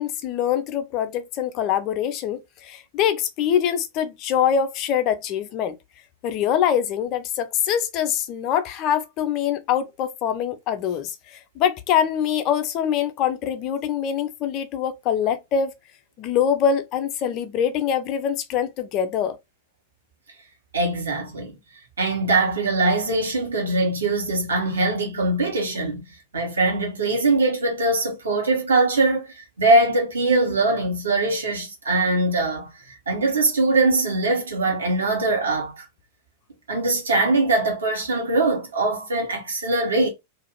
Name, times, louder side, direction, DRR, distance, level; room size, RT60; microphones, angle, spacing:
voice 1, 0.0-5.8 6.2-15.7 16.2-19.4, left 8 dB, 40° left, 0.5 m, -24 dB
voice 2, 20.7-21.5 22.0-26.0 26.3-35.9 36.7-40.1, right 2 dB, 70° right, 1.1 m, -22 dB
2.5 x 2.4 x 3.2 m
figure-of-eight pair, 90°, 0 cm